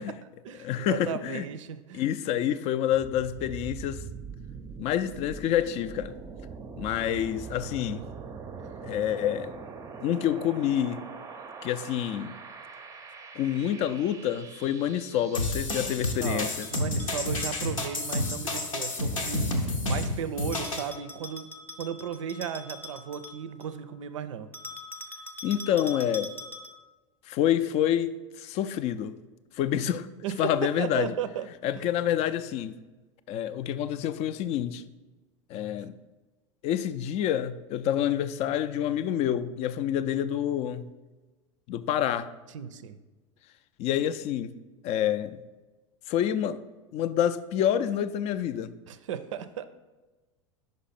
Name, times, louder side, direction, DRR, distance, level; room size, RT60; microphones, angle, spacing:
voice 1, 0.0-2.0 16.2-21.5 21.8-24.5 30.2-30.5 30.8-31.5 31.7-31.8 42.5-43.0 48.9-49.6, right 8 dB, 70° right, 0.5 m, -35 dB
voice 2, 0.6-1.5 1.9-4.0 4.8-6.1 6.8-8.0 8.8-9.5 10.0-11.0 11.6-12.3 13.4-16.7 25.4-26.3 27.3-29.2 29.5-30.1 30.4-31.1 31.6-32.7 33.3-34.8 35.5-35.9 36.6-40.9 41.7-42.3 43.8-44.5 44.8-45.4 46.1-46.6 46.9-48.7, left 10 dB, 40° left, 0.4 m, -27 dB
sound 1, 2.9-16.7, right 5 dB, 20° right, 0.5 m, -43 dB
sound 2, 15.3-20.9, left 2 dB, 85° left, 0.8 m, -30 dB
Bell, 16.6-18.3 20.5-23.8 24.5-26.9, left 1 dB, 10° left, 0.7 m, -43 dB
5.3 x 5.1 x 4.1 m
hypercardioid pair, 85°, 16 cm